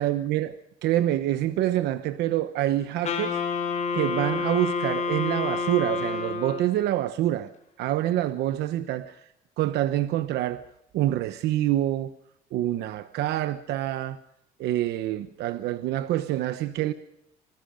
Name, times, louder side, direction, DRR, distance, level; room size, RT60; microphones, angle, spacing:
voice 1, 0.0-3.4 3.9-7.5 7.8-9.3 9.6-10.7 10.9-12.1 12.5-14.2 14.6-16.9, right 13 dB, 80° right, 1.0 m, -26 dB
Wind instrument woodwind instrument, 3.0-6.9, left 5 dB, 45° left, 7.7 m, -29 dB
26.5 x 20.5 x 5.2 m
cardioid pair, 110°, 17 cm